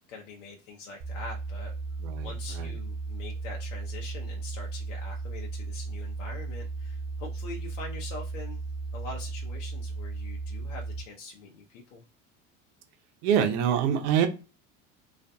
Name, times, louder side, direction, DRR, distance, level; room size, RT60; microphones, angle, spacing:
voice 1, 0.1-1.7 2.2-8.6 8.9-12.0, left 3 dB, 85° left, 0.7 m, -43 dB
sound 1, 1.0-11.0, right 3 dB, 30° right, 0.4 m, -35 dB
voice 2, 2.0-2.7 13.2-14.3, right 8 dB, 70° right, 0.7 m, -25 dB
2.5 x 2.2 x 2.5 m
hypercardioid pair, 90°, 37 cm